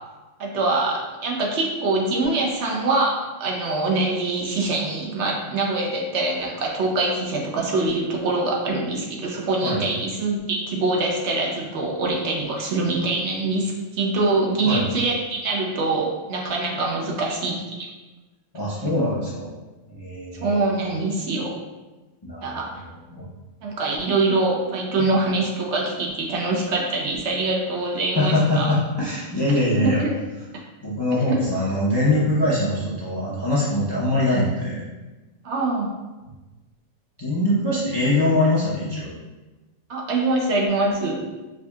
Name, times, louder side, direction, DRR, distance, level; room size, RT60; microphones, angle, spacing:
voice 1, 0.4-17.9 18.8-18.9 20.4-21.5 22.4-22.7 23.6-28.7 29.8-30.0 31.1-31.4 35.4-35.9 39.9-41.2, right 2 dB, 65° right, -1 dB, 0.8 m, -24 dB
voice 2, 18.5-19.5 19.9-20.6 22.2-22.6 23.1-23.3 28.2-30.0 30.8-34.8 37.2-39.1, left 1 dB, 30° left, -8 dB, 0.4 m, -22 dB
4.9 x 2.6 x 2.3 m, 1.2 s
omnidirectional pair, 1.4 m